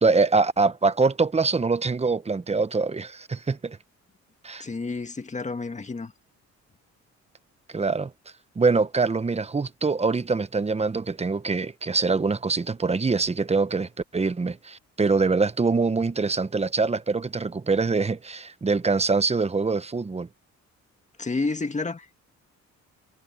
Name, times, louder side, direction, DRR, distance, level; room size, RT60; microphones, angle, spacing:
voice 1, 0.0-3.8 4.4-4.6 7.7-8.1 8.6-20.3, right 4 dB, 20° right, 1.0 m, -24 dB
voice 2, 4.6-6.1 21.2-22.2, left 3 dB, 25° left, 1.9 m, -30 dB
cardioid pair, 90°, 30 cm